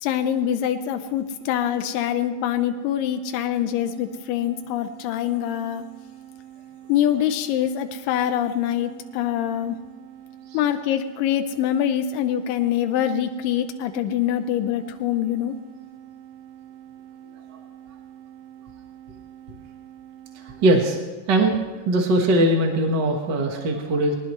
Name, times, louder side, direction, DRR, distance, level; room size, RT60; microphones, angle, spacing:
voice 1, 0.0-5.8 6.9-9.8 10.5-15.5, left 10 dB, 90° left, 8 dB, 2.4 m, -24 dB
sound 1, 1.4-21.0, right 11 dB, 85° right, 1.4 m, -45 dB
voice 2, 20.3-21.0 21.3-21.6 21.8-24.1, right 1 dB, 50° right, 2 dB, 1.4 m, -20 dB
23.0 x 19.5 x 3.2 m, 1.3 s
omnidirectional pair, 3.8 m